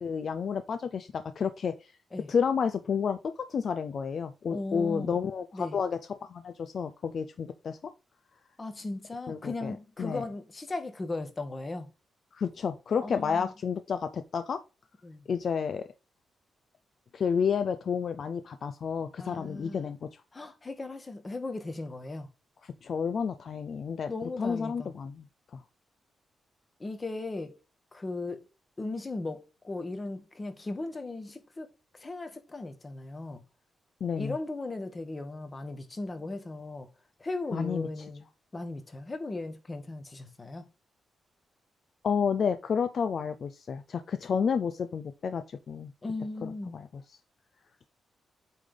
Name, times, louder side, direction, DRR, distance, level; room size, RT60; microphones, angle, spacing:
voice 1, 0.0-1.9 2.3-7.8 9.3-9.7 10.0-10.2 12.3-14.6 15.3-15.8 17.1-20.2 22.6-24.1 24.4-25.3 25.5-25.6 34.0-34.3 37.5-38.1 42.0-45.9 46.4-47.0, left 6 dB, 50° left, 0.4 m, -31 dB
voice 2, 4.5-5.2 5.5-5.8 8.6-11.9 13.0-13.5 15.0-15.2 19.2-19.9 20.3-22.3 24.1-24.9 26.8-27.6 27.9-28.4 28.8-31.7 31.9-33.4 34.2-36.9 37.2-38.2 38.5-40.7 46.0-46.8, left 2 dB, 20° left, 1.1 m, -37 dB
8.4 x 3.4 x 3.8 m
wide cardioid pair, 155°, 0 cm